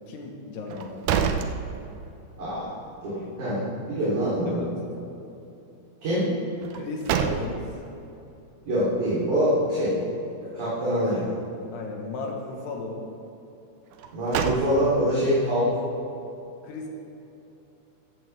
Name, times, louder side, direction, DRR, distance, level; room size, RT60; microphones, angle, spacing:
voice 1, 0.1-1.4 4.5-4.8 6.7-7.6 11.7-13.0 16.6-16.9, left 3 dB, 80° left, 0 dB, 3.7 m, -35 dB
sound 1, 0.7-2.3 2.7-2.8 6.6-7.9 13.9-15.2, right 7 dB, 90° right, 1.8 m, -28 dB
voice 2, 2.4-2.7 3.0-4.6 6.0-6.3 8.6-10.0 10.5-11.3 14.1-15.8, equal, 50° right, -10 dB, 5.0 m, -24 dB
16.5 x 14.5 x 3.7 m, 2.9 s
omnidirectional pair, 4.7 m